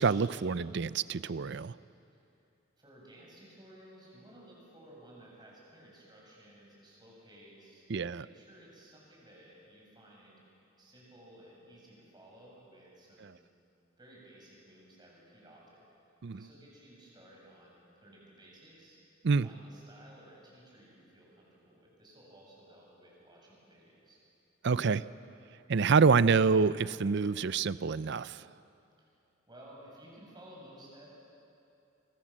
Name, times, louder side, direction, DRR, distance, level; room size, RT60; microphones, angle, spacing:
voice 1, 0.0-1.7 7.9-8.2 13.2-13.3 16.2-16.5 19.2-19.5 24.6-25.0 25.7-28.4, right 5 dB, 60° right, 16 dB, 0.5 m, -27 dB
voice 2, 2.8-7.9 8.2-10.4 10.8-13.4 14.0-15.8 16.3-19.0 19.4-24.2 29.0-29.1 29.5-31.1, right 1 dB, 20° right, -3 dB, 7.9 m, -56 dB
27.5 x 24.5 x 7.5 m, 2.7 s
head